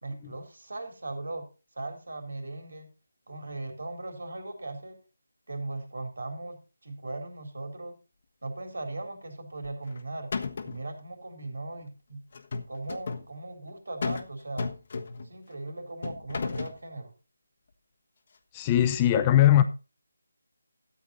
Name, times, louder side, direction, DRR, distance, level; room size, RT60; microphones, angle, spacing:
voice 1, 0.0-1.5 1.8-2.9 3.3-5.0 5.5-8.0 8.4-10.3 10.6-12.2 12.7-14.7 15.2-17.1, right 2 dB, 75° right, 3.8 m, -38 dB
sound 1, 9.6-10.0 10.3-10.9 12.3-13.3 14.0-14.3 14.6-15.3 16.0-16.8, left 4 dB, 45° left, 1.3 m, -33 dB
voice 2, 18.5-19.6, left 12 dB, 20° left, 0.9 m, -20 dB
13.0 x 8.5 x 4.1 m
figure-of-eight pair, 165°, 0 cm